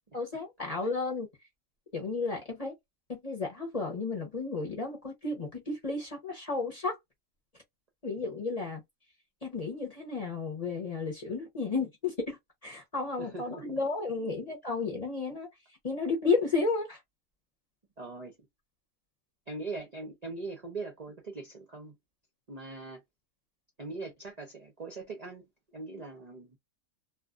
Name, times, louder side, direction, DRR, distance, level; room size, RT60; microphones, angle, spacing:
voice 1, 0.1-1.3 1.9-2.7 3.1-7.0 8.0-8.8 9.4-15.5 15.8-17.0, left 4 dB, 35° left, 0.7 m, -32 dB
voice 2, 13.2-13.6 14.2-14.3 18.0-18.4 19.5-22.0 22.5-23.0 23.8-26.6, right 3 dB, 45° right, 0.5 m, -41 dB
2.5 x 2.4 x 2.4 m
omnidirectional pair, 1.5 m